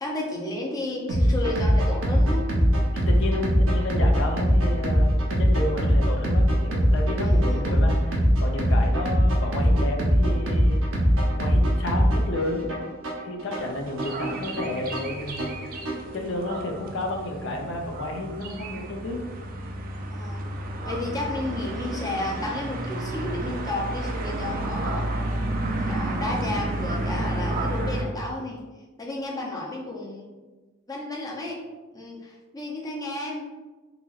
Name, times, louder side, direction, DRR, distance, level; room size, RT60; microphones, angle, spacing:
voice 1, 0.0-2.5 7.2-7.8 20.1-20.4 20.8-25.1 25.8-28.6 29.0-30.3 30.9-31.6 31.9-33.4, left 2 dB, 20° left, -2 dB, 0.6 m, -32 dB
sound 1, 1.1-16.1, equal, 70° right, 0.8 m, -22 dB
voice 2, 2.9-10.8 11.4-12.7 13.2-15.5 16.1-19.2, left 2 dB, 60° left, 1 dB, 0.5 m, -31 dB
sound 2, 13.5-28.0, right 1 dB, 40° right, 0.4 m, -31 dB
3.9 x 2.9 x 2.4 m, 1.2 s
head